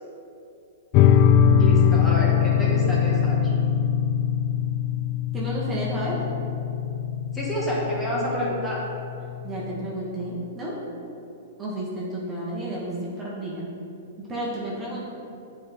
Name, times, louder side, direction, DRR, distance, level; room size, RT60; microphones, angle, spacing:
sound 1, 0.9-9.9, left 8 dB, 40° left, 0.3 m, -22 dB
voice 1, 1.6-3.4 7.3-8.8, equal, 15° left, -6 dB, 1.5 m, -28 dB
voice 2, 5.3-6.2 9.4-10.7 11.6-13.7 14.2-15.0, right 1 dB, 20° right, -6 dB, 1.3 m, -31 dB
8.5 x 4.3 x 3.6 m, 2.8 s
hypercardioid pair, 130°, 0 cm